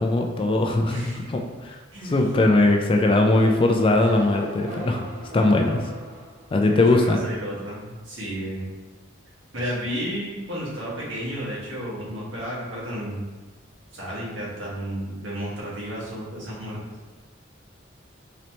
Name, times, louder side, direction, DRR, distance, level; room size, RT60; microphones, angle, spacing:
voice 1, 0.0-0.9 1.3-1.8 2.0-5.0 5.3-5.8 6.5-7.2, left 2 dB, 25° left, 3 dB, 0.3 m, -20 dB
voice 2, 0.9-1.2 1.9-2.2 6.6-8.7 9.5-13.3 13.9-16.8, equal, 70° right, -6 dB, 1.5 m, -32 dB
sound 1, 3.2-6.8, equal, 45° right, 0.7 m, -37 dB
4.0 x 2.9 x 3.2 m, 1.3 s
head